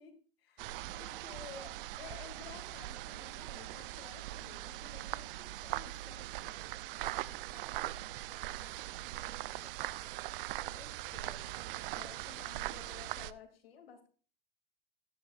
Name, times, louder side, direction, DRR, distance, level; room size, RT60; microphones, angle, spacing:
voice 1, 0.0-6.7 10.7-11.6 11.9-14.1, left 7 dB, 80° left, 5 dB, 2.6 m, -54 dB
sound 1, 0.6-13.3, right 16 dB, 65° right, 0.6 m, -41 dB
voice 2, 7.0-10.0, equal, 5° right, 6 dB, 2.0 m, -62 dB
15.0 x 10.0 x 2.5 m, 0.41 s
hypercardioid pair, 105°, 29 cm